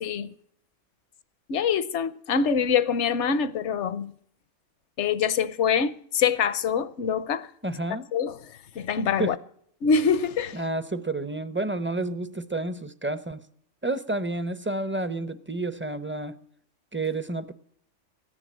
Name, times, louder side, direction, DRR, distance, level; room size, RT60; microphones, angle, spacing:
voice 1, 1.5-4.1 5.0-7.5 8.1-8.4 8.7-9.3 9.8-10.6, left 6 dB, 70° left, 1.1 m, -25 dB
voice 2, 7.6-8.1 9.2-9.3 10.5-13.4 13.8-16.3 16.9-17.5, right 2 dB, 15° right, 0.5 m, -30 dB
15.0 x 10.0 x 7.4 m
omnidirectional pair, 1.3 m